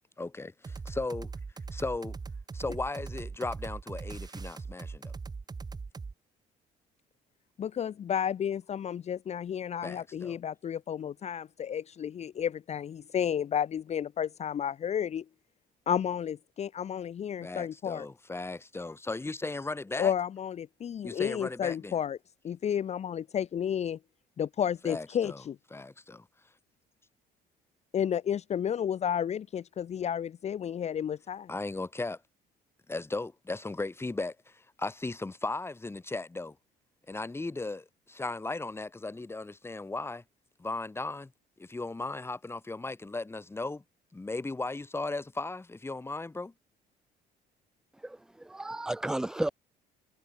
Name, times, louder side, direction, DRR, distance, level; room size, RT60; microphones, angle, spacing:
voice 1, 0.2-1.3 1.7-2.2 2.5-5.1 9.8-10.4 17.4-20.1 21.0-22.0 24.8-25.4 25.7-26.5 31.5-32.2 32.9-36.6 37.1-40.2 40.6-41.3 41.6-43.8 44.1-46.5, left 2 dB, 15° left, 2.4 m, -36 dB
sound 1, 0.6-6.1, right 4 dB, 25° right, 1.9 m, -40 dB
voice 2, 7.6-15.2 15.9-18.1 20.0-22.2 22.4-24.0 24.4-25.6 27.9-31.5, left 9 dB, 40° left, 0.8 m, -32 dB
voice 3, 48.0-49.5, right 1 dB, 5° right, 0.5 m, -33 dB
cardioid pair, 110°, 17 cm